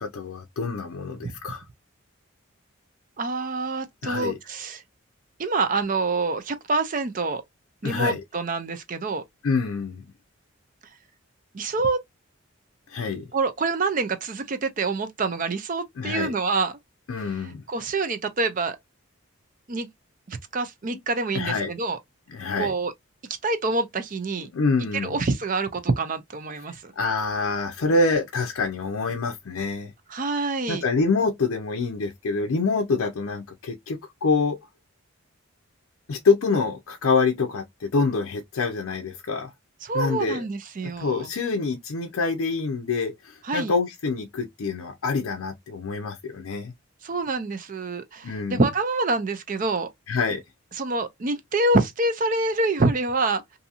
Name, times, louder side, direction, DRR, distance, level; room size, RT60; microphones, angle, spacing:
voice 1, 0.0-1.6 4.0-4.4 7.8-8.2 9.4-10.0 12.9-13.3 16.0-16.3 17.1-17.6 21.3-21.7 22.3-22.7 24.4-25.2 27.0-29.9 30.7-34.6 36.1-39.5 39.9-40.4 40.8-46.7 48.2-48.6 50.1-50.4, left 4 dB, 75° left, 0.5 m, -26 dB
voice 2, 3.2-4.8 5.4-7.4 7.8-9.2 11.5-12.0 13.3-16.7 17.7-18.8 19.7-19.9 20.3-22.0 22.6-22.9 23.4-24.5 25.0-26.9 30.1-30.8 39.8-41.3 43.4-43.7 47.0-49.9 50.7-53.4, right 3 dB, 40° right, 0.5 m, -26 dB
2.7 x 2.7 x 2.4 m
head